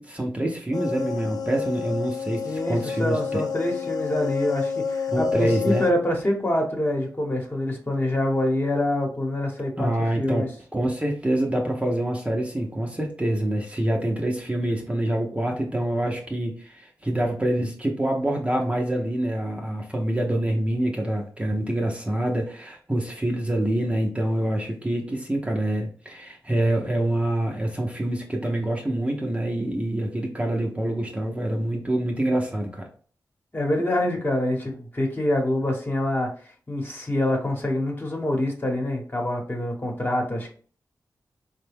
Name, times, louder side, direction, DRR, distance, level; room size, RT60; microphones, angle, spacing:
voice 1, 0.0-3.4 5.1-5.9 9.8-32.9, right 1 dB, 15° right, 0 dB, 0.8 m, -26 dB
sound 1, 0.7-5.9, left 6 dB, 65° left, 0.4 m, -29 dB
voice 2, 2.4-10.5 33.5-36.3 36.7-40.5, left 1 dB, 30° left, 1 dB, 1.2 m, -26 dB
3.7 x 2.2 x 3.5 m, 0.43 s
cardioid pair, 45°, 7 cm